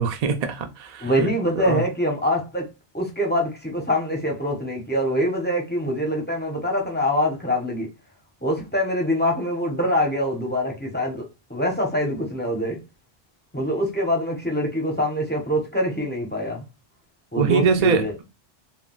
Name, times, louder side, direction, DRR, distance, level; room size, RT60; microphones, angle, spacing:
voice 1, 0.0-1.1 1.6-1.8 17.4-18.2, right 5 dB, 55° right, 0.4 m, -22 dB
voice 2, 1.0-2.7 2.9-7.9 8.4-12.8 13.5-16.6 17.3-18.1, equal, 10° left, 0.5 m, -24 dB
2.2 x 2.2 x 3.7 m
omnidirectional pair, 1.2 m